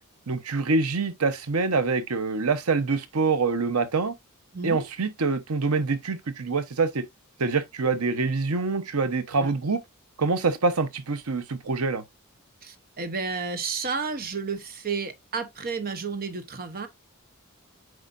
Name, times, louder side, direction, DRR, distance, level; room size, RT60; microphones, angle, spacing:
voice 1, 0.3-4.1 4.6-7.0 7.4-9.8 10.2-12.0, right 4 dB, 90° right, 0.9 m, -25 dB
voice 2, 4.5-4.8 9.4-9.5 12.6-16.9, right 4 dB, 45° right, 1.0 m, -31 dB
7.9 x 5.0 x 2.5 m
head